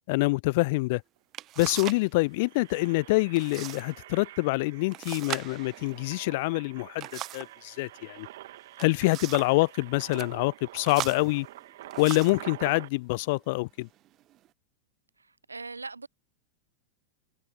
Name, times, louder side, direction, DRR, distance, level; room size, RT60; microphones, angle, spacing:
voice 1, 0.1-1.0 1.6-7.1 7.3-8.3 8.8-11.5 12.0-13.9, left 24 dB, 50° left, 0.3 m, -26 dB
sound 1, 0.8-0.9 1.3-2.1 2.3-2.8 3.3-3.9 4.2-4.3 4.9-7.6 8.5-9.6 10.0-10.3 10.8-12.5 13.2-13.4 14.0-14.5, right 14 dB, 35° right, 1.1 m, -39 dB
Engine, 1.2-1.3 1.5-1.7 2.2-12.9, right 15 dB, 55° right, 2.4 m, -47 dB
voice 2, 15.5-16.1, right 3 dB, 80° right, 0.4 m, -39 dB
figure-of-eight pair, 90°, 0 cm